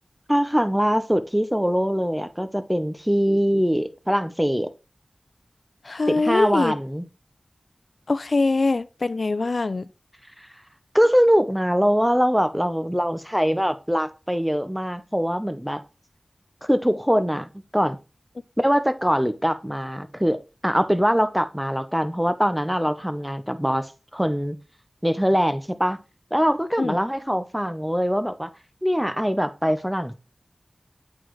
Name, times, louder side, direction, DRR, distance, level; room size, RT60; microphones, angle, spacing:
voice 1, 0.3-4.7 6.1-7.0 10.4-10.5 10.9-15.8 16.6-18.0 18.6-24.6 25.0-26.0 26.3-28.5 28.8-30.1, equal, 5° right, 0.8 m, -23 dB
voice 2, 5.8-6.7 8.1-9.9 26.8-27.0, left 3 dB, 75° left, 0.4 m, -23 dB
8.5 x 4.1 x 4.7 m
wide cardioid pair, 50°, 0 cm